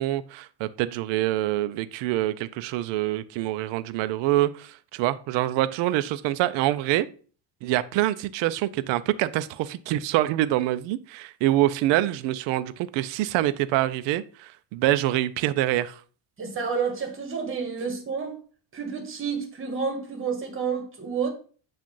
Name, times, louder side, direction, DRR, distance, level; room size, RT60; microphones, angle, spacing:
voice 1, 0.0-7.1 7.6-16.0, right 14 dB, 65° right, 0.5 m, -25 dB
voice 2, 16.4-18.3 18.7-21.3, right 5 dB, 25° right, 1.4 m, -30 dB
7.5 x 2.5 x 5.4 m
cardioid pair, 155°, 48 cm